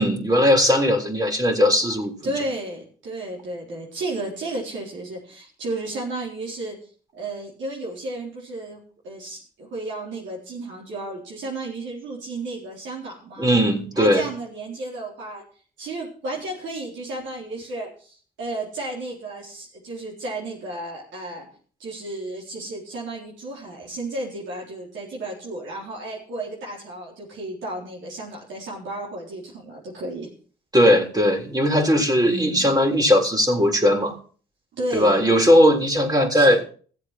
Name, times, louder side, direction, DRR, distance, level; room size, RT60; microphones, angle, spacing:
voice 1, 0.0-2.3 13.4-14.2 30.7-34.1 34.9-36.6, equal, 20° right, 3 dB, 3.7 m, -18 dB
voice 2, 2.2-6.8 7.1-13.5 14.0-15.4 15.8-21.5 21.8-30.3 32.2-32.7 34.7-35.3 36.3-36.6, right 2 dB, 75° right, -3 dB, 4.1 m, -33 dB
15.0 x 7.9 x 5.9 m, 0.43 s
hypercardioid pair, 45°, 20 cm